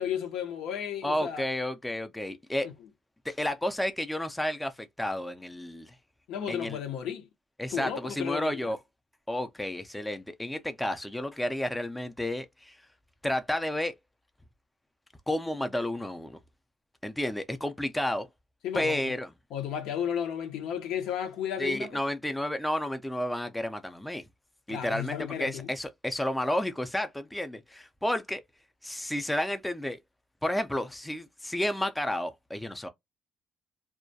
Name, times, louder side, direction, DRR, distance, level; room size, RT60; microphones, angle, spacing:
voice 1, 0.0-1.4 6.3-7.3 7.7-8.7 18.6-19.1 19.5-21.9 24.7-25.7, left 9 dB, 85° left, 0.7 m, -33 dB
voice 2, 1.0-2.7 3.3-5.9 6.5-6.8 7.6-8.8 9.3-12.8 13.2-13.9 15.3-16.4 17.0-18.3 18.7-19.3 21.6-24.2 24.7-28.4 28.8-30.0 30.4-32.9, left 1 dB, 5° left, 0.4 m, -31 dB
2.3 x 2.1 x 2.6 m
cardioid pair, 100°, 0 cm